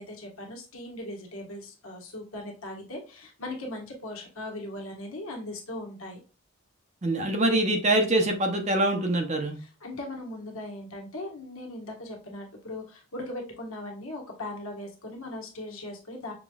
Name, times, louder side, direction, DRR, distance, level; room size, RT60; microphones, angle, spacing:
voice 1, 0.0-6.2 9.6-16.3, left 1 dB, 80° left, 0 dB, 1.4 m, -39 dB
voice 2, 7.0-9.6, right 1 dB, 35° right, 4 dB, 0.7 m, -24 dB
6.0 x 3.0 x 2.3 m, 0.36 s
head